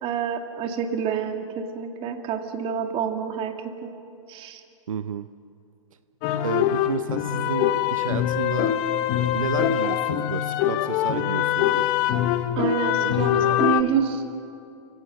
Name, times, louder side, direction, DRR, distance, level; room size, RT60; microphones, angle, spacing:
voice 1, 0.0-3.9 4.3-4.6 12.6-13.3 13.6-14.2, right 7 dB, 30° right, 5 dB, 2.1 m, -27 dB
voice 2, 4.9-5.3 6.4-8.8 9.3-11.9 13.0-13.6, right 7 dB, 80° right, 13 dB, 0.6 m, -32 dB
sound 1, 6.2-13.8, left 11 dB, 40° left, 1.1 m, -23 dB
28.5 x 16.5 x 6.5 m, 2.6 s
hypercardioid pair, 115°, 17 cm